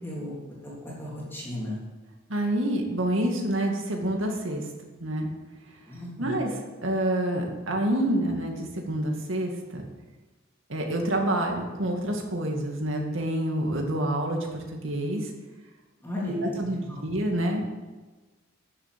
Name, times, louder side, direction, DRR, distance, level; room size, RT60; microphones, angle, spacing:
voice 1, 0.0-0.4 0.6-0.7 1.0-1.8 5.9-6.4 16.0-17.1, left 1 dB, 10° left, -6 dB, 3.4 m, -35 dB
voice 2, 2.3-4.6 5.0-5.3 6.2-6.5 6.8-9.8 10.7-15.3 16.2-17.6, right 1 dB, 70° right, 1 dB, 2.4 m, -27 dB
13.0 x 7.8 x 7.0 m, 1.2 s
head